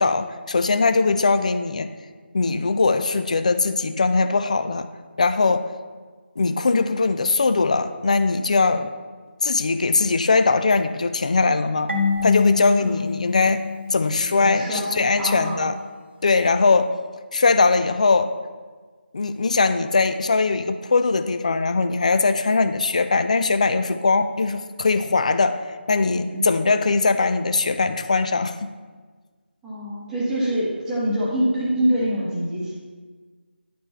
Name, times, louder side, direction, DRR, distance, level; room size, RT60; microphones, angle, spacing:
voice 1, 0.0-1.9 2.3-4.9 5.2-5.7 6.4-8.9 9.4-11.9 12.2-13.6 13.9-15.7 16.2-16.9 17.3-18.3 19.1-25.6 25.9-28.6, left 3 dB, 35° left, 9 dB, 0.3 m, -20 dB
Marimba xylophone / Wood, 11.9-14.6, left 5 dB, 75° right, 1.2 m, -26 dB
voice 2, 14.3-15.7 26.3-26.4 29.6-32.7, equal, 5° right, -8 dB, 1.0 m, -25 dB
11.0 x 4.4 x 3.1 m, 1.4 s
figure-of-eight pair, 160°, 6 cm